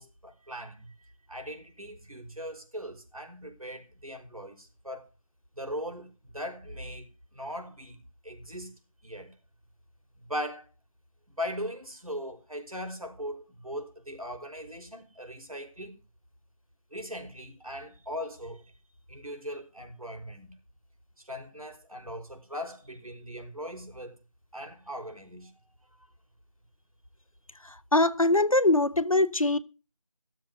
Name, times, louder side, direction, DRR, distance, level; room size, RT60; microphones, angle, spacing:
voice 1, 0.0-5.1 5.5-8.7 9.0-9.4 10.2-10.7 11.3-16.0 16.9-18.7 19.1-20.6 21.2-24.1 24.5-25.5 26.0-26.1, equal, 80° right, 5.5 m, -39 dB
voice 2, 27.6-29.6, left 2 dB, 70° left, 1.1 m, -23 dB
17.0 x 7.6 x 6.6 m
figure-of-eight pair, 175°, 18 cm